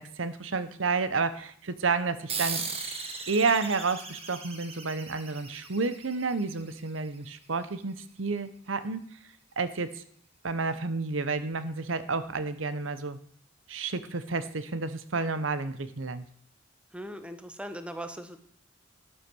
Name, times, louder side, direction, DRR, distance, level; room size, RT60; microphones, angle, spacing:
voice 1, 0.0-2.6 3.3-9.2 9.6-10.0 10.4-13.2 13.7-16.2, right 4 dB, 85° right, 13 dB, 0.9 m, -30 dB
sound 1, 2.3-7.3, right 5 dB, 30° right, 1.7 m, -38 dB
voice 2, 16.9-18.4, equal, 5° right, 9 dB, 1.0 m, -39 dB
12.5 x 9.9 x 6.2 m, 0.64 s
head